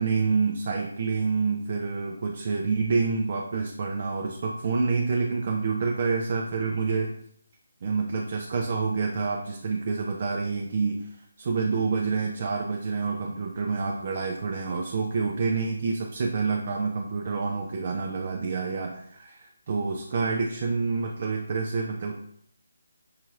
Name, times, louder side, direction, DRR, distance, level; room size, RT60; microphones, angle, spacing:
voice 1, 0.0-7.2 7.8-11.1 11.4-22.1, right 4 dB, 40° right, 1 dB, 0.5 m, -28 dB
5.7 x 2.8 x 2.5 m, 0.67 s
figure-of-eight pair, 150°, 0 cm